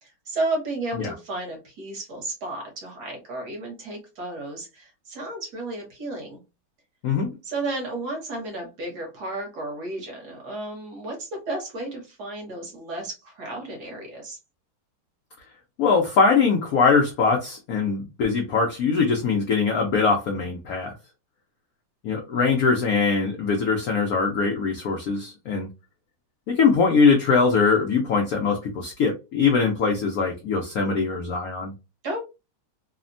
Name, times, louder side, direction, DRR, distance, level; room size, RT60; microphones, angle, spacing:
voice 1, 0.0-6.4 7.4-14.4 32.0-32.2, right 2 dB, 55° right, 1 dB, 1.4 m, -33 dB
voice 2, 15.8-20.9 22.0-25.7 26.5-31.7, left 5 dB, 80° left, 1 dB, 0.8 m, -22 dB
3.3 x 2.1 x 2.5 m, 0.27 s
omnidirectional pair, 2.2 m